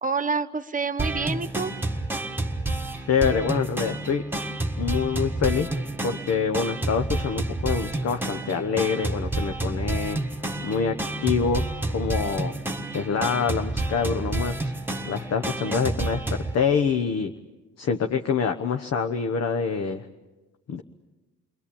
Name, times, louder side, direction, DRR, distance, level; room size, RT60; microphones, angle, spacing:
voice 1, 0.0-1.7 15.7-15.9, right 4 dB, 25° right, 12 dB, 1.2 m, -28 dB
sound 1, 1.0-16.5, right 2 dB, 5° right, 1.5 m, -29 dB
voice 2, 3.1-4.2 4.8-5.7 6.0-10.2 10.6-11.6 11.9-12.5 12.9-14.7 15.1-17.3 17.8-20.0 20.7-20.8, left 6 dB, 55° left, 6 dB, 1.1 m, -26 dB
29.5 x 21.5 x 8.6 m, 1.1 s
cardioid pair, 90°, 30 cm